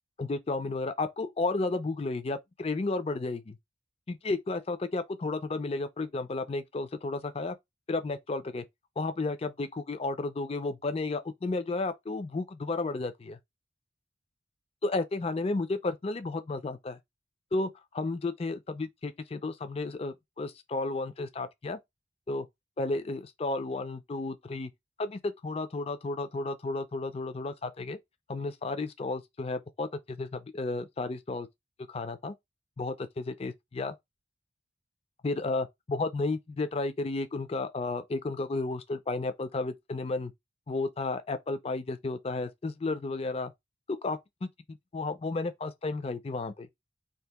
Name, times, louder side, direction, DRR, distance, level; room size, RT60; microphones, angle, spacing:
voice 1, 0.2-3.6 4.1-7.6 7.9-8.6 9.0-13.4 14.8-17.0 17.5-21.8 22.3-22.5 22.8-24.7 25.0-28.0 28.3-31.5 31.9-32.3 32.8-33.9 35.2-40.3 40.7-43.5 43.9-46.7, left 3 dB, 30° left, 0.4 m, -33 dB
2.8 x 2.5 x 3.4 m
head